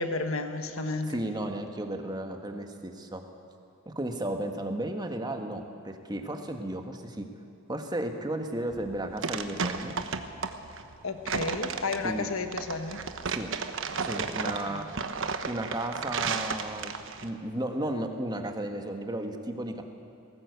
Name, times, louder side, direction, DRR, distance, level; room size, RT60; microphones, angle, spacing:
voice 1, 0.0-1.2 11.0-13.0 14.4-14.9, left 3 dB, 75° left, 7 dB, 1.5 m, -32 dB
voice 2, 1.1-3.2 3.9-7.3 7.7-9.9 12.0-12.3 13.2-13.5 14.0-14.9 15.4-16.9 17.2-19.8, right 1 dB, 20° right, 5 dB, 1.6 m, -34 dB
sound 1, 8.7-17.3, right 5 dB, 65° right, 1.2 m, -33 dB
20.0 x 18.0 x 8.1 m, 2.8 s
head